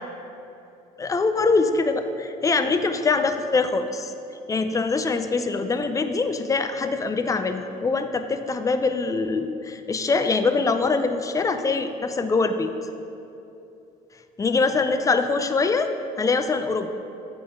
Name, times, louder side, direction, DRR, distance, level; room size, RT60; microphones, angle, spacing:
voice 1, 1.0-4.1 4.5-12.7 14.4-15.9 16.2-16.9, left 4 dB, 20° left, 8 dB, 0.4 m, -23 dB
8.5 x 3.7 x 6.3 m, 2.8 s
cardioid pair, 110°, 17 cm